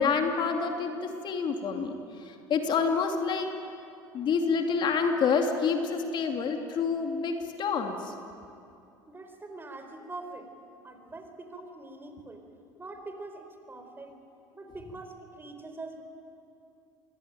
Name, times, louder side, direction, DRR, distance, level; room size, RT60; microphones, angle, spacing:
voice 1, 0.0-1.9 2.3-3.6 4.1-8.1, left 5 dB, 50° left, 4 dB, 2.8 m, -28 dB
voice 2, 9.1-10.5 10.8-12.4 12.8-14.2 14.5-16.0, right 2 dB, 20° right, 6 dB, 4.8 m, -43 dB
27.0 x 23.0 x 9.1 m, 2.6 s
hypercardioid pair, 70°, 10 cm